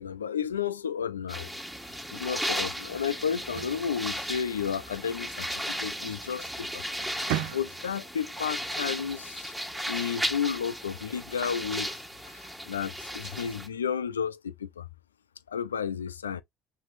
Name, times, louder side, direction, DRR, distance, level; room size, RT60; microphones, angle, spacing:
voice 1, 0.0-1.5 2.1-6.8 7.2-9.5 9.9-12.0 12.3-14.9 15.5-16.4, left 7 dB, 90° left, 0.4 m, -32 dB
sound 1, 1.3-13.7, equal, 5° right, 1.7 m, -35 dB
sound 2, 3.3-4.8 6.3-6.5 6.9-8.1, right 14 dB, 70° right, 0.7 m, -36 dB
5.9 x 3.2 x 2.6 m
hypercardioid pair, 60°, 0 cm